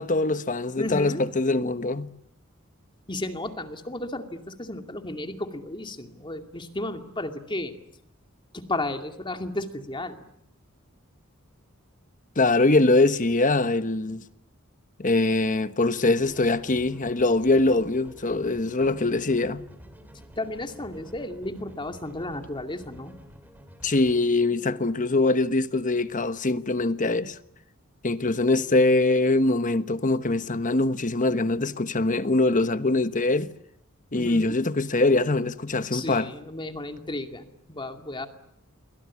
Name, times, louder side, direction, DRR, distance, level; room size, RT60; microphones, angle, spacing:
voice 1, 0.0-2.1 12.4-14.2 15.0-19.6 23.8-27.4 28.0-33.5 34.1-36.3, left 2 dB, 40° left, 1.2 m, -23 dB
voice 2, 0.8-1.2 3.1-7.7 8.5-10.3 20.4-23.2 34.1-34.6 35.9-38.3, left 1 dB, 25° left, 2.4 m, -33 dB
sound 1, 16.2-24.2, equal, 10° right, 3.1 m, -49 dB
28.5 x 24.0 x 8.4 m
head